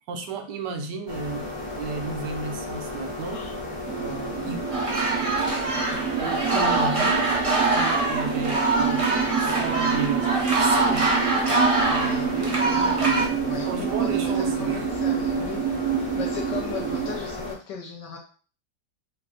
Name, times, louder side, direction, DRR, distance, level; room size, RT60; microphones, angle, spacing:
voice 1, 0.1-1.5 1.7-3.4 4.4-4.7 6.2-7.3 7.7-11.1 13.1-14.9, right 4 dB, 85° right, 5 dB, 1.3 m, -33 dB
sound 1, 1.1-17.5, left 2 dB, 15° left, 1.2 m, -34 dB
voice 2, 3.3-3.6 4.0-4.9 11.3-15.6 16.0-18.2, left 7 dB, 80° left, -1 dB, 1.3 m, -38 dB
sound 2, 3.9-17.2, right 8 dB, 65° right, 1.1 m, -28 dB
sound 3, 4.7-13.3, right 2 dB, 35° right, 0.5 m, -24 dB
3.3 x 2.4 x 3.7 m, 0.39 s
omnidirectional pair, 1.8 m